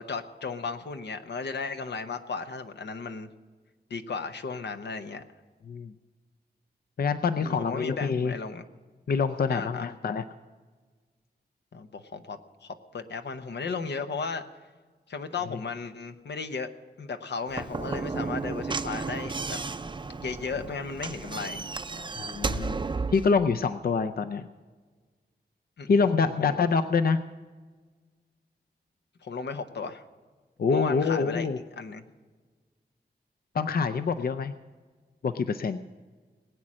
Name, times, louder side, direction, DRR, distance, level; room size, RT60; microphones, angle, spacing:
voice 1, 0.0-3.3 3.9-5.2 7.4-8.7 9.5-9.9 11.7-14.4 15.1-16.7 17.0-19.6 20.1-21.6 25.8-25.9 26.2-26.6 29.2-30.0 30.7-31.5 31.8-32.0, left 4 dB, 90° left, 8 dB, 0.9 m, -35 dB
voice 2, 7.0-8.4 9.1-10.2 22.2-22.8 23.1-24.4 25.9-27.2 30.6-31.6 33.5-34.5 35.2-35.8, left 5 dB, 60° left, 9 dB, 0.5 m, -26 dB
Slam / Knock, 17.5-23.3, right 4 dB, 25° right, 0.5 m, -33 dB
20.5 x 8.7 x 6.3 m, 1.4 s
wide cardioid pair, 115°, 17 cm